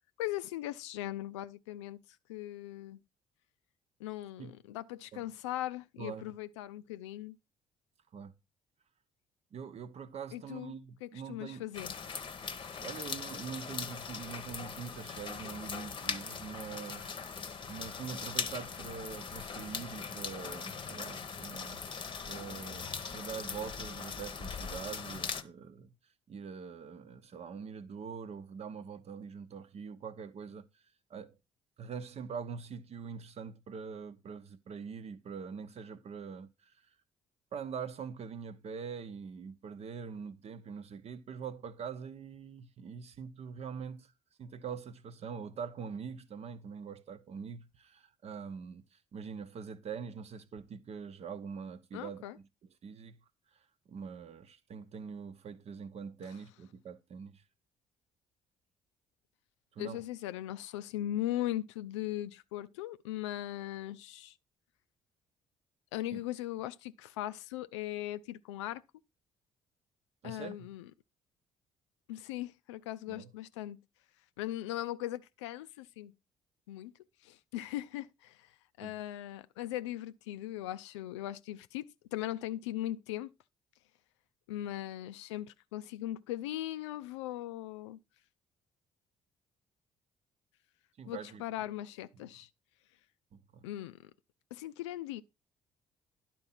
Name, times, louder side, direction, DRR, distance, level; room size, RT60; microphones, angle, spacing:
voice 1, 0.2-2.0 2.3-3.0 4.0-7.4 10.3-10.7 11.0-11.9 51.9-52.4 59.8-64.3 65.9-68.8 70.2-70.9 72.1-73.8 74.4-76.1 76.7-76.9 77.2-78.5 78.8-83.3 84.5-88.0 91.1-92.5 93.6-94.1 94.5-95.2, left 14 dB, 70° left, 0.5 m, -39 dB
voice 2, 6.0-6.3 8.1-8.3 9.5-11.6 12.8-25.9 26.3-30.8 31.1-31.4 31.8-36.9 37.5-44.1 44.4-52.5 52.8-53.2 53.5-53.6 53.9-57.4 59.7-60.0 66.1-66.2 70.2-70.7 73.1-73.3 78.8-79.0 91.0-91.4 92.1-92.3 93.3-93.7, right 6 dB, 45° right, 0.9 m, -44 dB
sound 1, 11.7-25.4, left 5 dB, 30° left, 0.9 m, -40 dB
11.0 x 4.5 x 5.6 m
figure-of-eight pair, 45°, 15 cm